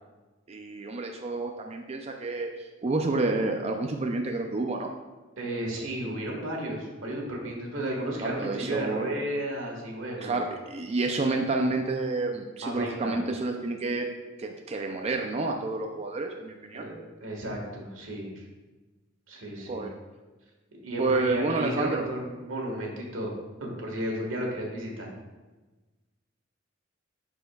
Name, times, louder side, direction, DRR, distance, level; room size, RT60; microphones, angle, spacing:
voice 1, 0.5-2.5 2.8-4.9 8.2-9.1 10.2-14.1 14.4-16.9 19.7-19.9 21.0-22.1, right 3 dB, 30° right, 3 dB, 0.4 m, -29 dB
voice 2, 5.4-10.4 12.6-13.2 16.7-18.4 19.3-19.9 20.8-23.3 23.6-25.1, right 1 dB, 90° right, 0 dB, 1.5 m, -33 dB
11.5 x 4.4 x 2.3 m, 1.2 s
head